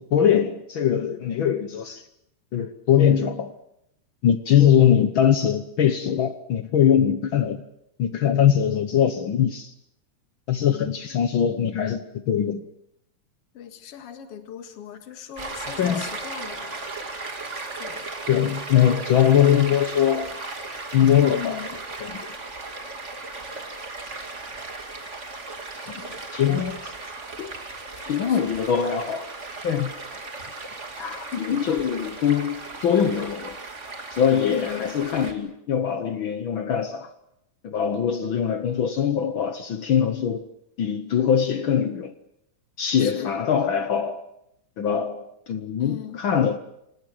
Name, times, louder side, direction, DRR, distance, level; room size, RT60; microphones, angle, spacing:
voice 1, 0.0-2.0 2.5-3.5 4.2-7.6 8.0-9.7 10.5-12.6 15.8-16.1 18.3-20.4 20.9-21.6 22.0-22.3 26.3-26.9 27.4-27.5 28.0-29.3 29.6-29.9 31.0-33.6 34.1-37.1 37.6-40.5 40.8-42.1 42.8-44.3 44.8-46.6, left 9 dB, 70° left, 1.2 m, -22 dB
voice 2, 10.7-11.1 13.5-16.9 17.7-18.2 21.3-21.8 25.8-26.3 28.0-28.5 34.5-35.0 43.0-43.4 45.8-46.2, left 9 dB, 50° left, 2.8 m, -40 dB
Stream, 15.4-35.3, right 3 dB, 25° right, 2.5 m, -36 dB
27.5 x 18.0 x 7.6 m
omnidirectional pair, 3.5 m